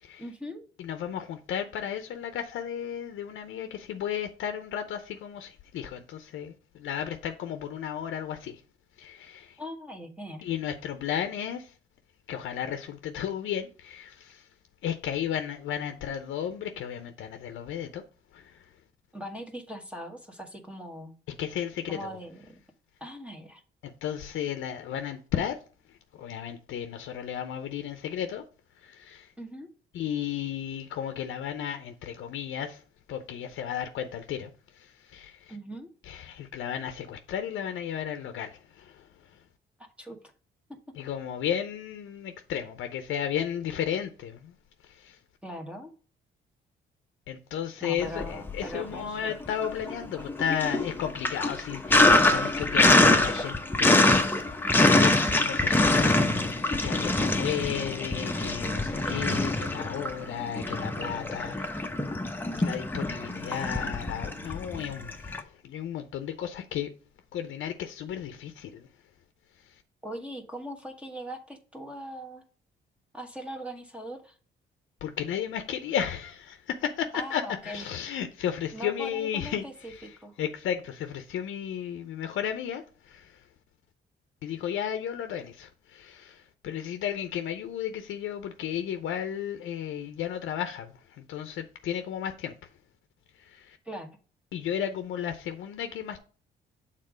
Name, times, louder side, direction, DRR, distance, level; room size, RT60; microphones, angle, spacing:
voice 1, 0.2-0.6 9.6-10.5 19.1-21.1 21.9-22.6 23.0-23.6 29.4-29.7 35.5-35.9 39.8-40.2 45.4-45.9 47.8-49.3 57.4-57.8 70.0-72.4 73.1-74.4 77.1-77.9 78.7-80.4 93.8-94.1, equal, 5° right, 1.2 m, -40 dB
voice 2, 0.8-8.6 9.0-9.6 10.4-11.7 12.3-14.5 14.8-18.0 18.3-18.6 21.4-22.0 23.8-25.6 26.1-28.4 28.8-29.3 29.9-32.8 33.1-35.5 36.1-39.1 39.3-39.4 41.0-44.5 44.9-45.2 47.3-54.0 55.0-61.9 62.5-66.9 67.3-68.9 75.0-80.1 80.4-83.4 84.4-92.6 93.4-93.8 94.5-96.2, left 9 dB, 80° left, 0.7 m, -34 dB
Sink (filling or washing), 48.1-49.0 49.3-65.4, left 2 dB, 10° left, 0.8 m, -24 dB
6.6 x 3.7 x 4.9 m
cardioid pair, 90°, 20 cm